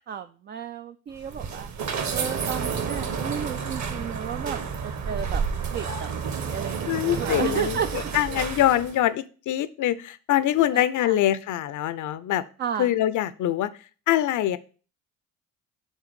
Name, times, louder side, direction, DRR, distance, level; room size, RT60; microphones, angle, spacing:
voice 1, 0.1-1.7 2.1-5.4 5.7-7.9 10.7-11.2 12.6-12.9, right 8 dB, 25° right, 8 dB, 0.4 m, -33 dB
sound 1, 1.1-9.0, right 6 dB, 40° right, 1.2 m, -30 dB
voice 2, 6.9-12.4 12.8-13.7 14.1-14.6, left 12 dB, 45° left, 15 dB, 0.6 m, -24 dB
7.2 x 3.8 x 5.3 m, 0.38 s
hypercardioid pair, 55°, 42 cm